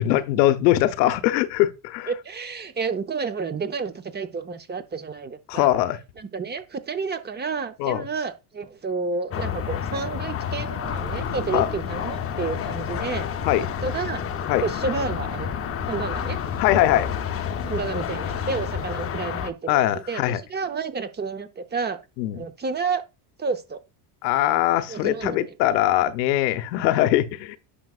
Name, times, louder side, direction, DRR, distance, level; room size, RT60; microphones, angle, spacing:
voice 1, 0.0-2.1 5.5-6.0 7.8-8.0 11.5-11.7 13.4-13.7 14.5-14.6 16.6-17.1 19.7-20.4 22.2-22.5 24.2-27.6, left 14 dB, 85° left, 1.0 m, -21 dB
voice 2, 2.1-5.7 6.2-13.3 13.6-14.2 14.6-16.4 17.6-22.0 22.3-23.0 23.4-23.8 24.9-25.5, right 4 dB, 20° right, 0.7 m, -30 dB
sound 1, 9.3-19.5, left 9 dB, 30° left, 0.7 m, -30 dB
sound 2, 10.8-18.9, right 3 dB, 85° right, 3.3 m, -42 dB
10.0 x 6.0 x 2.4 m
supercardioid pair, 115°, 49 cm